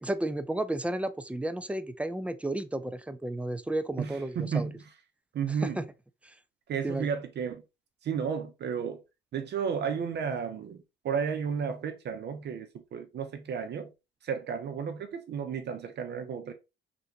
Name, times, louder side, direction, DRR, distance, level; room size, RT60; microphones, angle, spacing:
voice 1, 0.0-4.7 5.6-5.8 6.2-6.3 6.8-7.1, right 1 dB, 5° right, 0.3 m, -32 dB
voice 2, 4.0-4.7 5.3-5.9 6.7-7.6 8.0-9.0 9.3-13.9 14.2-16.5, right 6 dB, 60° right, 0.5 m, -33 dB
3.3 x 2.6 x 2.8 m
cardioid pair, 90°, 20 cm